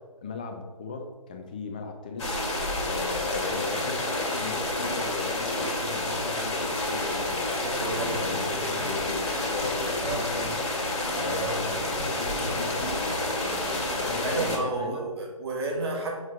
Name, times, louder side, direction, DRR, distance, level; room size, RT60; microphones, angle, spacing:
voice 1, 0.2-2.4 2.8-7.6 7.9-10.6 11.1-15.0, left 4 dB, 15° left, 4 dB, 0.4 m, -37 dB
sound 1, 2.2-14.6, left 2 dB, 55° left, 2.0 m, -29 dB
sound 2, 6.0-13.1, right 1 dB, 10° right, 1.9 m, -43 dB
voice 2, 7.6-8.5 10.1-10.2 11.2-11.6 14.2-16.2, right 3 dB, 45° right, -1 dB, 1.6 m, -31 dB
7.1 x 4.9 x 3.2 m, 1.4 s
figure-of-eight pair, 140°, 19 cm